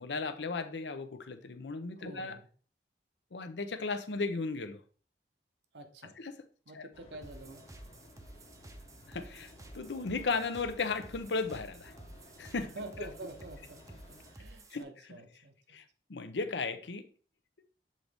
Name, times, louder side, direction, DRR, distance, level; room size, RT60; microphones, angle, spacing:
voice 1, 0.0-2.4 3.3-4.8 6.2-6.4 6.7-6.9 9.1-11.9 12.4-12.7 14.7-14.9 15.7-15.8 16.1-17.1, left 4 dB, 90° left, 0.7 m, -35 dB
voice 2, 2.0-2.5 5.7-6.2 6.7-7.6 12.7-13.8 14.3-15.5, right 2 dB, 80° right, 1.0 m, -47 dB
sound 1, 6.9-14.3, left 1 dB, 35° left, 0.9 m, -56 dB
sound 2, 7.2-14.8, right 1 dB, 20° right, 0.6 m, -52 dB
7.5 x 3.9 x 3.5 m
head